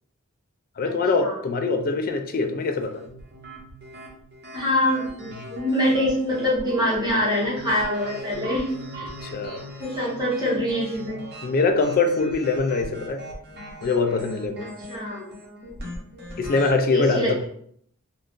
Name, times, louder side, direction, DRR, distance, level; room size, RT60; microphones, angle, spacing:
voice 1, 0.8-3.0 5.4-5.5 9.2-9.7 11.4-13.2 13.8-14.6 16.4-17.4, left 3 dB, 40° left, 6 dB, 0.3 m, -23 dB
sound 1, 2.9-16.7, equal, 50° right, 0.9 m, -40 dB
voice 2, 4.5-9.1 9.8-11.2 14.9-15.3 16.9-17.4, equal, 20° right, -6 dB, 1.0 m, -24 dB
2.6 x 2.4 x 3.6 m, 0.65 s
head